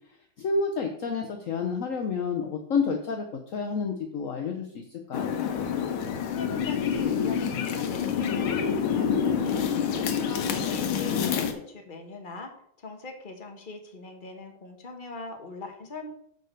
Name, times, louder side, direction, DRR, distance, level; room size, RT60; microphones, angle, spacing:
voice 1, 0.4-3.2 3.5-5.3, left 5 dB, 60° left, 3 dB, 0.8 m, -29 dB
sound 1, 5.1-11.5, left 7 dB, 80° left, 1.8 m, -27 dB
voice 2, 6.3-9.6 9.9-12.5 12.8-16.1, left 2 dB, 30° left, 3 dB, 1.1 m, -41 dB
6.6 x 5.3 x 6.6 m, 0.68 s
omnidirectional pair, 2.3 m